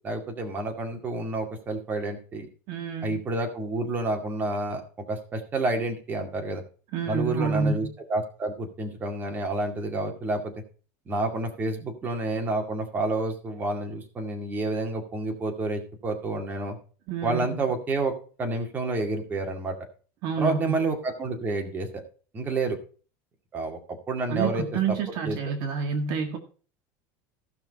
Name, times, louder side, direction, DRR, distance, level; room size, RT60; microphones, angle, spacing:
voice 1, 0.0-2.5 3.0-4.8 5.1-6.6 7.1-10.5 11.1-16.8 17.2-18.1 18.4-19.8 20.4-22.0 22.3-22.8 23.5-23.8 24.1-25.0 25.3-25.4, right 2 dB, 20° right, 3 dB, 2.2 m, -29 dB
voice 2, 2.7-3.2 6.9-7.9 17.1-17.7 20.2-20.8 24.3-26.4, right 5 dB, 50° right, 6 dB, 1.8 m, -28 dB
16.0 x 6.0 x 4.1 m, 0.39 s
cardioid pair, 160°, 9 cm